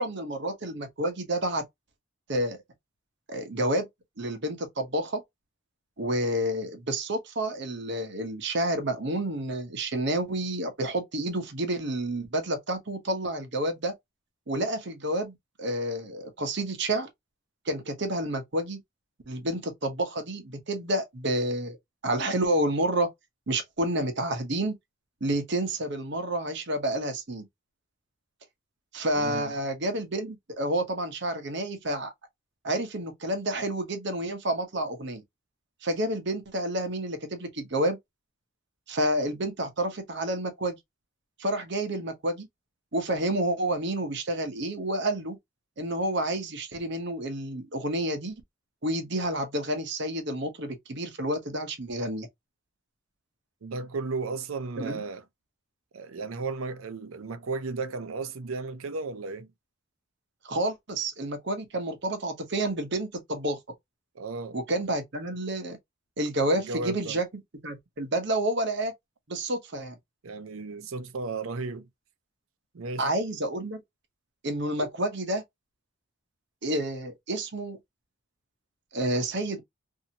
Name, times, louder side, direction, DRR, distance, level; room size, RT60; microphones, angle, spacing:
voice 1, 0.0-1.6 2.3-2.6 3.3-3.9 4.2-5.2 6.0-13.9 14.5-17.1 17.7-18.8 19.3-21.8 22.0-23.1 23.5-24.7 25.2-27.5 28.9-32.1 32.6-35.2 35.8-38.0 38.9-40.8 41.4-42.5 42.9-45.4 45.8-48.4 48.8-52.3 54.8-55.0 60.4-63.6 64.5-65.8 66.2-67.3 67.6-68.9 69.3-70.0 73.0-73.8 74.4-75.4 76.6-77.8 78.9-79.6, right 1 dB, 55° right, 0.9 m, -29 dB
voice 2, 29.2-29.5 53.6-55.2 55.9-59.5 64.2-64.6 66.5-67.2 70.2-71.9 72.7-73.1, right 3 dB, 85° right, 0.5 m, -34 dB
2.7 x 2.7 x 2.8 m
head